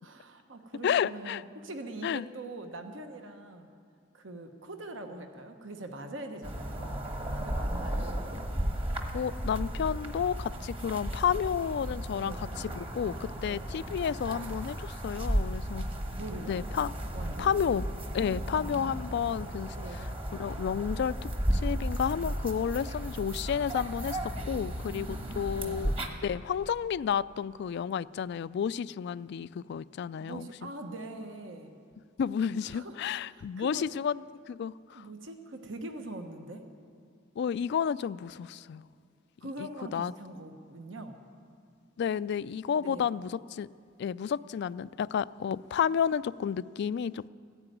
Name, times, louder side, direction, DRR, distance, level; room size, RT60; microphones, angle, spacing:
voice 1, 0.0-3.7 4.1-8.1 12.2-12.5 13.4-13.7 16.2-16.6 17.1-17.5 18.2-18.9 19.8-20.1 24.8-25.8 30.2-31.7 32.6-33.0 33.3-33.9 34.9-36.6 39.4-41.2 42.8-43.1, right 2 dB, 70° right, 6 dB, 1.2 m, -43 dB
voice 2, 0.8-1.4 2.0-2.2 9.1-15.8 16.5-16.9 17.4-17.8 18.1-19.7 20.4-25.9 26.2-30.5 32.2-35.1 37.4-38.9 39.6-39.7 39.9-40.1 42.0-43.7 44.0-47.3, left 7 dB, 60° left, 18 dB, 0.3 m, -31 dB
sound 1, 6.4-26.1, right 1 dB, 30° right, 1.3 m, -34 dB
15.0 x 9.7 x 9.2 m, 2.2 s
head